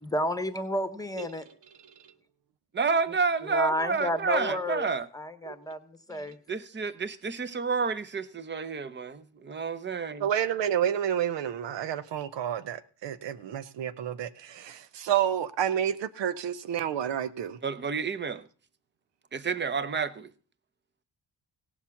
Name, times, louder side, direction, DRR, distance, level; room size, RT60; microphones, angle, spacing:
voice 1, 0.0-1.5 3.5-4.9 5.1-6.4, left 1 dB, 10° left, 1.1 m, -31 dB
voice 2, 2.7-5.1 6.1-6.2 6.5-10.3 17.6-18.5 19.3-20.3, right 5 dB, 25° right, 0.8 m, -30 dB
voice 3, 10.2-17.6, right 10 dB, 85° right, 0.9 m, -30 dB
17.0 x 7.3 x 7.1 m
wide cardioid pair, 160°, 42 cm